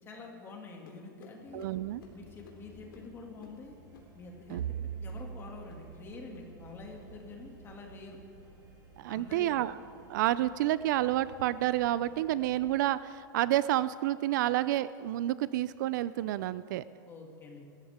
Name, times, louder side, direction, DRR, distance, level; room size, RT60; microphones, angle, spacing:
voice 1, 0.0-1.7 2.1-3.8 4.1-4.6 5.0-8.2 9.1-9.5 17.0-17.7, left 4 dB, 20° left, 1 dB, 2.4 m, -47 dB
sound 1, 0.9-5.9 6.2-6.5 6.8-7.2 7.5-7.9 8.3-8.6 9.0-9.3 9.8-10.1 10.6-10.9 11.4-11.6 12.3-12.4 13.1-13.2 14.0-14.1, left 5 dB, 80° left, 3.2 m, -60 dB
sound 2, 1.4-12.8, right 1 dB, 30° right, 3.6 m, -58 dB
voice 2, 1.5-2.0 4.5-4.6 9.0-9.7 10.1-16.8, right 14 dB, 60° right, 16 dB, 0.4 m, -29 dB
Bowed string instrument, 4.6-8.9, right 9 dB, 80° right, 1.0 m, -43 dB
24.5 x 14.0 x 3.6 m, 2.6 s
supercardioid pair, 145°, 11 cm